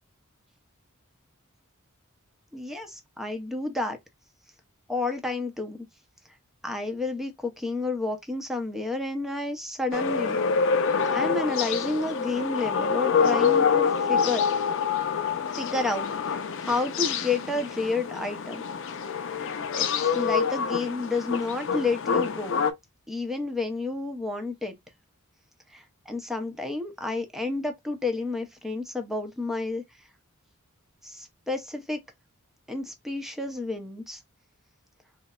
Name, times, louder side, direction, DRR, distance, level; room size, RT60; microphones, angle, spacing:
voice 1, 2.5-4.0 4.9-5.8 6.6-10.7 11.0-14.4 15.5-18.7 19.7-22.6 23.1-24.8 25.7-29.8 31.0-32.0 32.7-34.2, left 3 dB, ahead, 0.6 m, -30 dB
sound 1, 9.9-22.7, left 6 dB, 60° left, 0.5 m, -26 dB
3.9 x 2.1 x 2.3 m
head